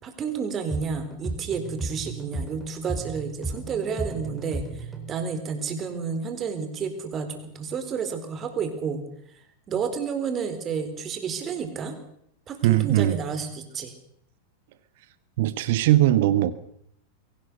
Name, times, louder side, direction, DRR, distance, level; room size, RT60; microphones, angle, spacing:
voice 1, 0.0-4.7 5.1-9.0 9.7-11.9 12.5-13.9, right 6 dB, 25° right, 7 dB, 4.3 m, -30 dB
sound 1, 0.7-5.2, right 2 dB, 5° right, 4.8 m, -34 dB
voice 2, 12.6-13.2 15.4-16.5, right 14 dB, 50° right, 14 dB, 1.3 m, -20 dB
23.0 x 18.0 x 6.9 m, 0.71 s
figure-of-eight pair, 90°, 0 cm